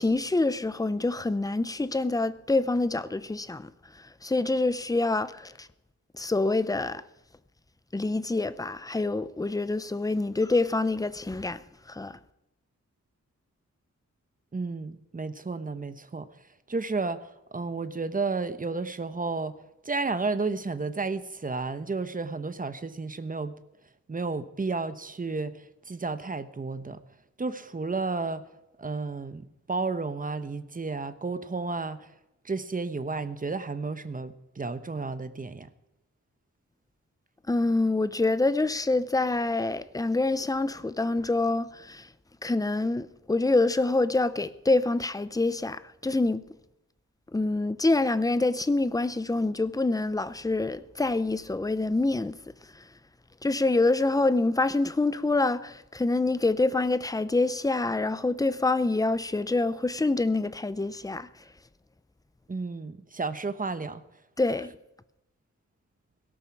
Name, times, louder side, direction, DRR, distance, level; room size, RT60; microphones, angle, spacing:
voice 1, 0.0-3.7 4.0-5.7 6.1-7.0 7.9-11.6 11.9-12.2 37.5-42.1 42.4-46.4 47.3-52.4 53.4-61.3 64.4-64.7, left 2 dB, 10° left, 0.6 m, -26 dB
voice 2, 14.5-16.3 16.7-19.6 19.8-23.6 24.1-27.0 27.4-28.5 28.8-32.1 32.4-35.7 62.5-64.0, right 3 dB, 30° right, 1.0 m, -32 dB
17.5 x 17.0 x 4.7 m
wide cardioid pair, 140°, 30 cm